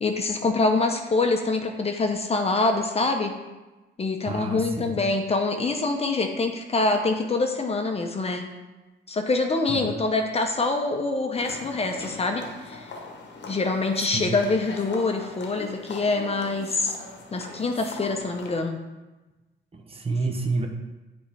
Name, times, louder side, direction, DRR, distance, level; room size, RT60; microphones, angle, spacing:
voice 1, 0.0-3.3 4.0-8.5 9.1-12.9 13.5-16.9 17.3-18.8, left 3 dB, 30° left, 4 dB, 0.8 m, -25 dB
voice 2, 4.3-4.9 9.7-9.9 14.1-14.2 19.7-20.7, right 3 dB, 30° right, 3 dB, 0.9 m, -29 dB
sound 1, 11.3-18.6, left 3 dB, 60° left, 1.1 m, -41 dB
8.0 x 4.3 x 3.4 m, 1.1 s
cardioid pair, 90°, 20 cm